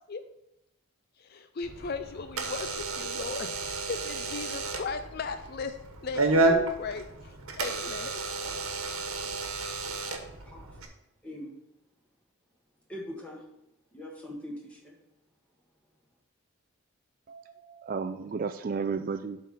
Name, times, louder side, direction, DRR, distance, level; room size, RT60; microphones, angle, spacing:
voice 1, 1.3-5.7 6.0-8.2, left 4 dB, 45° left, 0.4 m, -37 dB
Door / Alarm, 1.6-10.9, right 3 dB, 80° right, 1.3 m, -31 dB
voice 2, 10.4-10.9 11.2-11.6 12.9-13.4 13.9-14.9, left 1 dB, 5° left, 1.6 m, -42 dB
voice 3, 17.3-19.4, right 5 dB, 40° right, 0.3 m, -33 dB
8.3 x 3.8 x 6.7 m
head